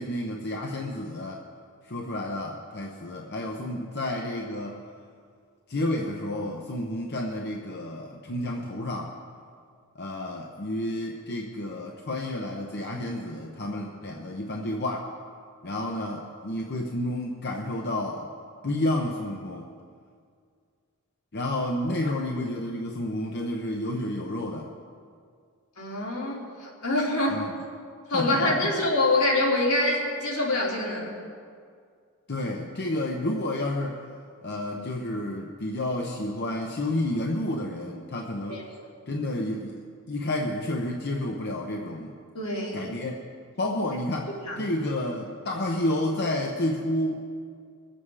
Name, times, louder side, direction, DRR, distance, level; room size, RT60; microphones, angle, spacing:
voice 1, 0.0-1.5 1.8-4.8 5.7-9.1 9.9-15.1 15.6-18.3 18.6-19.7 21.3-24.7 27.3-27.5 28.1-28.7 32.3-34.0 34.4-38.6 39.1-39.8 40.1-42.2 42.7-43.2 43.6-47.2, left 1 dB, 50° left, 0 dB, 0.9 m, -30 dB
voice 2, 25.8-27.4 28.1-31.2 38.5-38.6 42.3-42.9 44.4-44.7, left 2 dB, 80° left, -4 dB, 3.2 m, -25 dB
22.0 x 7.8 x 4.8 m, 2.2 s
head